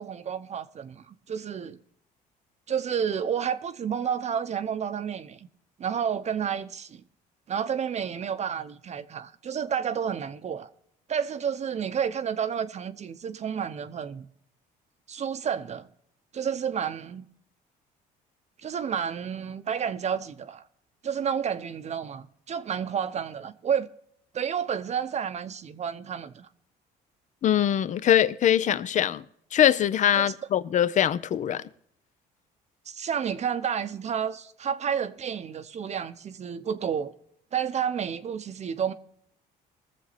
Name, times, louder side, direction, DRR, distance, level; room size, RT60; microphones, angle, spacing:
voice 1, 0.0-1.8 2.7-5.5 5.8-7.0 7.5-10.7 11.1-14.3 15.1-15.9 16.3-17.3 18.6-20.6 21.0-23.9 24.3-26.5 30.2-30.3 32.9-37.1 37.5-38.9, right 7 dB, 40° right, 0.8 m, -30 dB
voice 2, 27.4-29.2 29.5-31.6, left 10 dB, 45° left, 0.6 m, -22 dB
21.0 x 7.4 x 4.1 m
cardioid pair, 110°, 17 cm